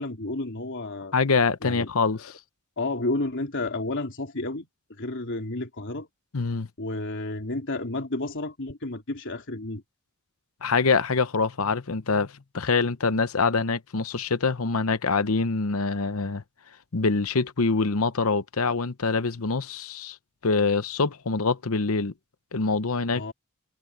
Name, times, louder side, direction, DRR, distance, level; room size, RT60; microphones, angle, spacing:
voice 1, 0.0-1.1 1.6-1.9 2.2-2.3 2.8-4.7 5.0-6.1 6.8-9.8 23.1-23.3, left 2 dB, 60° left, 3.7 m, -31 dB
voice 2, 1.1-2.3 6.3-6.7 10.6-16.4 16.9-20.2 20.4-22.1 22.5-23.2, left 4 dB, 75° left, 0.9 m, -25 dB
head